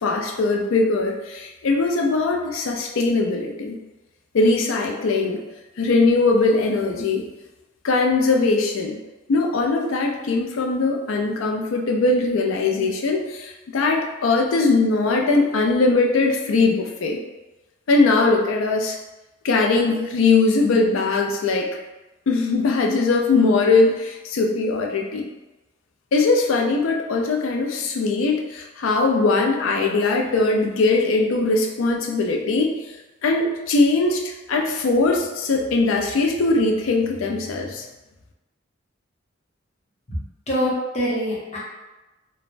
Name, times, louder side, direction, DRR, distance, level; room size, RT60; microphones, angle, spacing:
voice 1, 0.0-3.8 4.3-5.4 5.8-7.2 7.8-9.0 9.3-17.2 17.9-19.0 19.4-21.7 22.3-25.3 26.1-32.7 33.2-37.9, left 3 dB, 85° left, 1 dB, 0.4 m, -20 dB
voice 2, 40.5-41.6, equal, 35° left, -6 dB, 0.7 m, -24 dB
3.1 x 2.0 x 2.5 m, 1.1 s
head